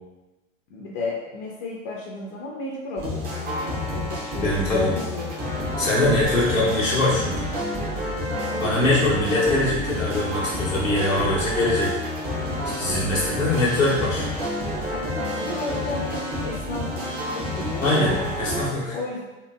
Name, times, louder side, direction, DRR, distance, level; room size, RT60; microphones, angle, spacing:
voice 1, 0.7-5.3 8.7-9.6 13.5-13.6 14.0-14.1 14.9-16.8 17.3-18.3 18.9-19.2, left 3 dB, 40° left, -3 dB, 0.5 m, -33 dB
sound 1, 3.0-18.7, left 1 dB, 25° right, 0.7 m, -29 dB
voice 2, 4.4-4.9 5.8-7.5 8.6-11.9 12.7-14.3 17.8-18.9, left 2 dB, 90° left, -7 dB, 0.8 m, -22 dB
2.8 x 2.5 x 2.3 m, 1.1 s
figure-of-eight pair, 90°, 38 cm